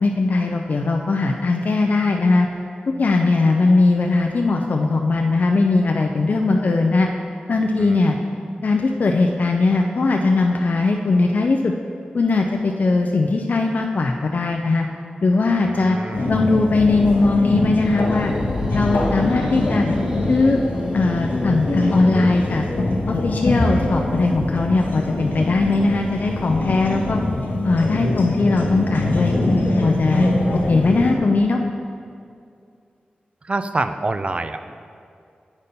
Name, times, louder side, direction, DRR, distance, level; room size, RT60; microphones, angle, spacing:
voice 1, 0.0-2.5 3.0-7.1 7.5-8.2 8.6-11.7 12.1-14.9 15.2-16.0 16.3-18.3 18.7-19.9 20.3-20.6 20.9-22.7 23.1-27.2 27.6-29.4 29.8-30.3 30.7-31.6, left 3 dB, 55° left, 2 dB, 0.4 m, -19 dB
voice 2, 15.6-16.4 33.4-34.7, right 2 dB, 35° right, 9 dB, 0.3 m, -26 dB
sound 1, 16.1-31.1, left 2 dB, 85° left, 0.9 m, -23 dB
sound 2, 16.8-17.5 18.0-19.0, equal, 75° right, 1.6 m, -38 dB
sound 3, 17.7-22.6, equal, 15° right, 0.7 m, -37 dB
8.0 x 4.2 x 5.2 m, 2.3 s
wide cardioid pair, 85°, 3 cm